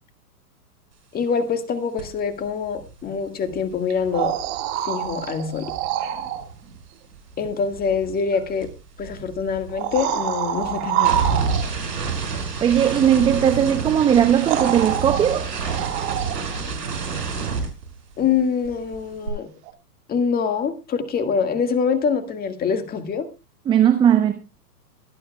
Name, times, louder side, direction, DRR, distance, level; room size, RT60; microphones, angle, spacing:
voice 1, 1.1-4.4 4.9-5.7 7.4-8.7 9.0-11.2 18.2-19.5 20.1-23.3, left 6 dB, 20° left, 1.7 m, -24 dB
sound 1, 2.0-2.2 2.5-6.8 7.1-18.4 18.6-19.3, right 5 dB, 85° right, 5.3 m, -30 dB
sound 2, 3.9-6.5 8.3-8.4 9.7-11.9 13.8-13.9 14.4-16.6 19.7-19.8, right 11 dB, 40° right, 1.8 m, -26 dB
voice 2, 12.6-15.5 23.7-24.3, right 9 dB, 10° right, 0.6 m, -18 dB
24.0 x 9.4 x 2.3 m
hypercardioid pair, 125°, 48 cm